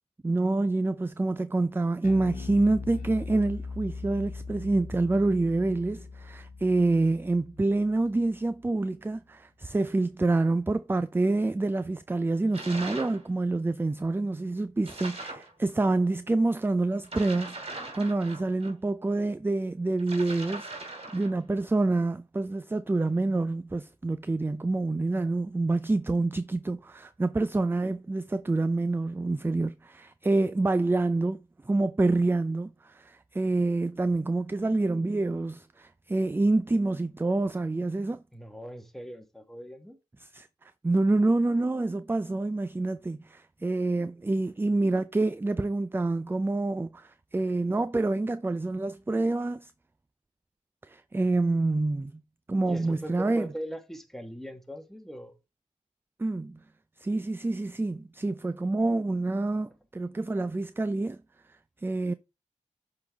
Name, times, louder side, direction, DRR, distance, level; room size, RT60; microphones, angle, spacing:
voice 1, 0.2-38.2 40.3-49.7 50.9-52.1 52.5-53.5 56.2-56.6 57.0-61.2 61.8-62.1, right 2 dB, 15° right, 0.4 m, -27 dB
Bass guitar, 2.0-8.5, left 4 dB, 85° left, 0.8 m, -40 dB
sound 1, 12.5-13.2 14.8-15.5 17.0-18.7 20.0-21.4, right 2 dB, 50° right, 2.8 m, -40 dB
voice 2, 38.3-40.0 52.7-55.3 59.6-59.7, equal, ahead, 1.3 m, -40 dB
7.6 x 3.9 x 3.4 m
cardioid pair, 55°, 13 cm